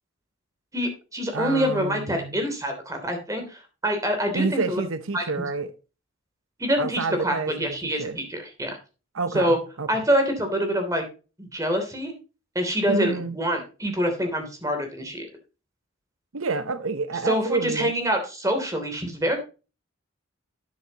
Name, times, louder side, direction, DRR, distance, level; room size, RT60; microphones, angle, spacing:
voice 1, 0.7-4.8 5.1-5.2 6.6-8.8 9.3-9.6 9.9-11.1 11.4-12.1 12.5-15.3 17.2-19.4, equal, 15° right, 3.1 m, -26 dB
voice 2, 1.3-2.4 4.3-5.7 6.8-8.2 9.1-9.9 12.9-13.4 16.3-17.9, right 4 dB, 80° right, 0.9 m, -29 dB
11.5 x 9.6 x 2.9 m
head